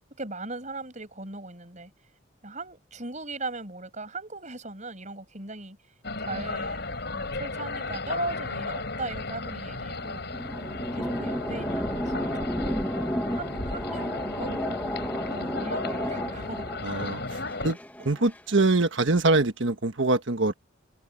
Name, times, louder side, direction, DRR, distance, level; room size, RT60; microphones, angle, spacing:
voice 1, 0.2-1.9 2.4-5.8 6.2-6.8 7.1-10.3 10.9-12.8 13.3-16.7, right 3 dB, 35° right, 7.7 m, -38 dB
sound 1, 6.0-17.7, left 3 dB, 55° left, 5.8 m, -34 dB
sound 2, 9.9-18.4, equal, 10° left, 1.9 m, -33 dB
voice 2, 16.8-17.2 17.6-17.8 18.0-20.5, right 3 dB, 65° right, 1.4 m, -23 dB
head